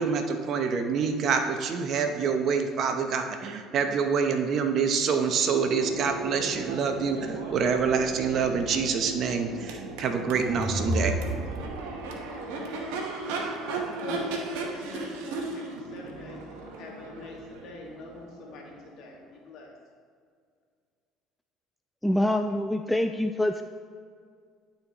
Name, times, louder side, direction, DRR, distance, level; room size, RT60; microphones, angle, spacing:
voice 1, 0.0-11.1, right 6 dB, 55° right, 6 dB, 0.8 m, -26 dB
Crowd / Race car auto racing / Accelerating revving vroom, 5.4-19.2, right 3 dB, 85° right, 1.0 m, -37 dB
sound 1, 10.3-12.2, right 1 dB, 35° right, 1.1 m, -31 dB
voice 2, 14.0-19.7, left 3 dB, 65° left, -1 dB, 1.7 m, -44 dB
voice 3, 22.0-23.6, left 1 dB, 5° left, 6 dB, 0.3 m, -25 dB
12.5 x 4.3 x 3.0 m, 2.1 s
supercardioid pair, 85°, 0 cm